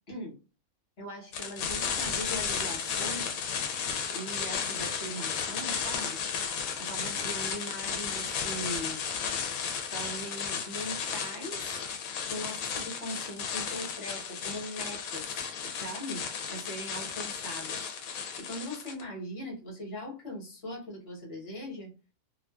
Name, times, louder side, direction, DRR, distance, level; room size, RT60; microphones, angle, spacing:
voice 1, 0.1-0.4 1.0-3.3 4.1-6.2 6.7-9.0 9.9-11.8 12.3-16.2 16.5-17.9 18.4-21.9, equal, 45° left, -2 dB, 1.3 m, -40 dB
sound 1, 1.3-19.0, left 6 dB, 75° left, 1.0 m, -34 dB
2.6 x 2.4 x 2.2 m, 0.31 s
omnidirectional pair, 1.5 m